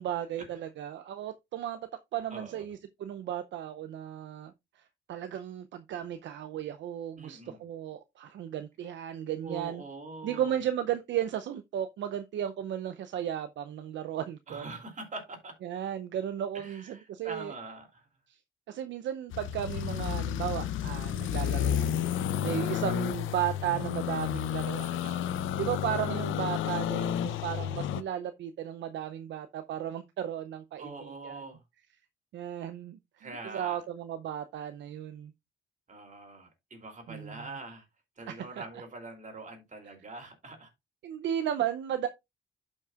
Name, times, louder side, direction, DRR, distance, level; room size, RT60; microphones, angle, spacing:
voice 1, 0.0-1.8 2.1-9.8 10.2-14.7 15.6-17.5 18.3-18.4 18.7-22.1 22.4-25.0 25.6-31.4 32.3-35.3 37.1-37.4 38.3-38.6 41.0-42.1, right 10 dB, 65° right, 0.6 m, -35 dB
voice 2, 2.3-2.6 7.2-7.7 9.4-10.6 14.5-15.5 16.5-18.1 25.0-25.5 30.8-31.6 33.2-33.8 35.9-37.9 38.2-40.7, right 3 dB, 40° right, 2.9 m, -44 dB
sound 1, 19.3-28.0, left 11 dB, 80° left, 0.6 m, -31 dB
12.0 x 5.4 x 2.4 m
cardioid pair, 90°, 20 cm